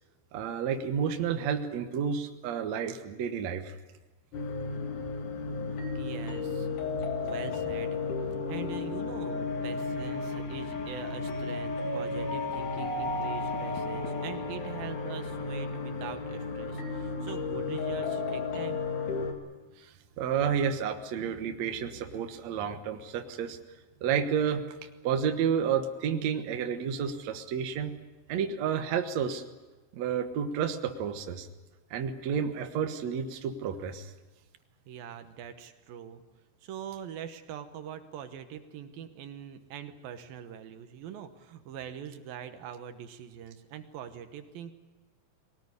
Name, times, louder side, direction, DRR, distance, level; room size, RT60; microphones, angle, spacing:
voice 1, 0.3-3.7 19.8-23.6 24.0-24.6 25.0-27.9 28.3-29.4 29.9-31.5 31.9-34.1, right 7 dB, 60° right, 6 dB, 2.2 m, -30 dB
sound 1, 4.3-19.3, left 4 dB, 60° left, 3.5 m, -33 dB
voice 2, 5.9-6.7 7.2-8.0 8.5-18.8 34.9-36.2 36.6-44.7, right 9 dB, 80° right, 8 dB, 2.9 m, -43 dB
22.5 x 18.5 x 9.7 m, 1.2 s
omnidirectional pair, 4.2 m